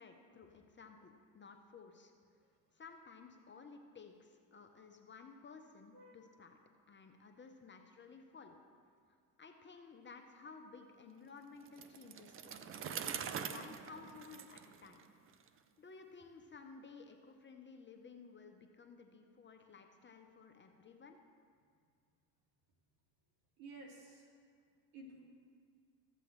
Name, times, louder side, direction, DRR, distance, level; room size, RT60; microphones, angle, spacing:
voice 1, 0.0-2.1 2.7-6.6 6.9-8.6 9.4-12.7 13.0-15.0 15.8-21.2, left 4 dB, 25° left, 4 dB, 0.7 m, -55 dB
Bicycle, 11.7-15.5, right 7 dB, 30° right, 0.4 m, -44 dB
voice 2, 23.6-24.2 24.9-25.2, right 2 dB, 70° right, -1 dB, 2.4 m, -53 dB
14.0 x 7.8 x 3.2 m, 2.1 s
supercardioid pair, 85°, 50 cm